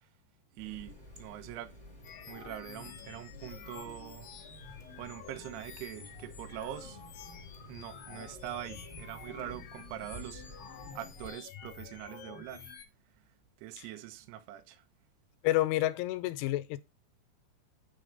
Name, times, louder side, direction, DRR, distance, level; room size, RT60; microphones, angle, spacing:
Water tap faucet, 0.6-11.3, equal, 15° right, 1.2 m, -52 dB
voice 1, 0.6-1.7 2.3-4.3 5.0-7.0 7.7-10.4 11.0-12.7 13.6-14.8, right 12 dB, 75° right, 2.6 m, -43 dB
sound 1, 2.0-12.9, left 8 dB, 70° left, 2.2 m, -49 dB
voice 2, 15.4-16.8, left 16 dB, 85° left, 3.1 m, -29 dB
9.4 x 3.8 x 5.2 m
omnidirectional pair, 5.6 m